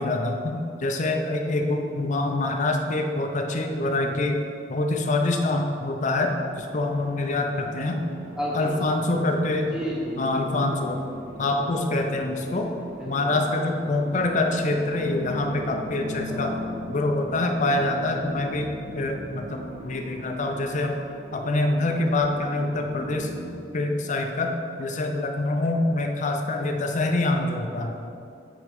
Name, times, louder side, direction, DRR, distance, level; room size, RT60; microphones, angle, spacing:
voice 1, 0.0-4.4 4.7-8.0 8.5-9.8 10.2-11.0 11.4-12.7 13.1-16.6 16.9-21.0 21.3-23.3 23.7-24.5 24.8-27.9, left 2 dB, 40° left, 3 dB, 0.4 m, -25 dB
sound 1, 6.3-23.5, left 1 dB, 45° right, 1.0 m, -39 dB
voice 2, 8.4-9.0 9.7-10.6 13.0-13.6 16.3-16.8 27.9-28.0, equal, 5° right, -5 dB, 1.0 m, -33 dB
6.3 x 3.6 x 5.1 m, 2.6 s
head